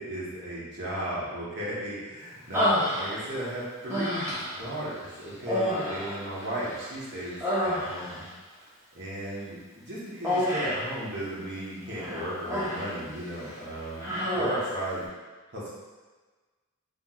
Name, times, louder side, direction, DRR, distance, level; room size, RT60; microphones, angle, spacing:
voice 1, 0.0-4.3 4.6-8.2 8.9-15.0 15.5-15.7, right 1 dB, 55° right, -7 dB, 1.2 m, -35 dB
Human voice, 2.5-3.4 3.9-4.6 5.4-6.9 7.2-8.2 10.2-10.9 11.9-13.0 13.3-13.6 14.0-14.8, equal, 15° right, 0.9 m, -29 dB
5.7 x 3.4 x 2.4 m, 1.3 s
head